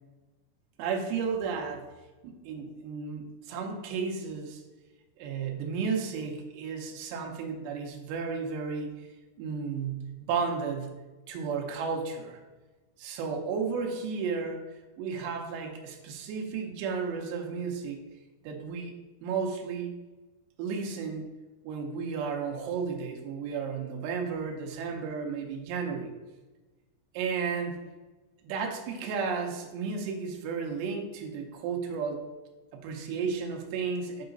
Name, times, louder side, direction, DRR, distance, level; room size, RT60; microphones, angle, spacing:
voice 1, 0.8-1.9 2.2-4.6 5.2-9.0 9.4-10.9 11.3-12.4 13.0-14.6 15.0-18.0 18.4-18.9 19.2-19.9 20.6-21.3 21.6-26.1 27.1-27.8 28.4-32.3 32.7-34.3, right 5 dB, 80° right, 2 dB, 3.0 m, -33 dB
7.7 x 4.8 x 3.9 m, 1.2 s
omnidirectional pair, 5.1 m